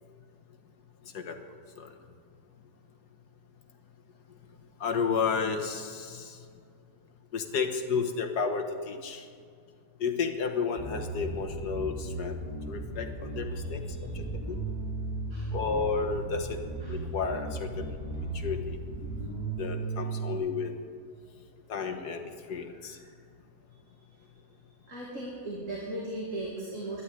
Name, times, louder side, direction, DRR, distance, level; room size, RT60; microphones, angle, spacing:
voice 1, 4.8-6.4 7.3-9.2 10.0-12.4 12.7-14.6 15.5-16.6 16.9-18.0 18.3-18.8 19.6-20.8 21.7-23.0, left 5 dB, 85° left, 6 dB, 1.9 m, -32 dB
Bass guitar, 10.8-20.4, right 2 dB, 25° left, 4.4 m, -36 dB
voice 2, 13.5-14.1 14.6-14.7 15.0-15.6 16.8-17.0 19.5-19.6 22.7-23.1 24.0-24.4 24.8-27.0, right 1 dB, 50° right, -5 dB, 3.0 m, -39 dB
12.5 x 11.5 x 9.7 m, 2.2 s
omnidirectional pair, 1.7 m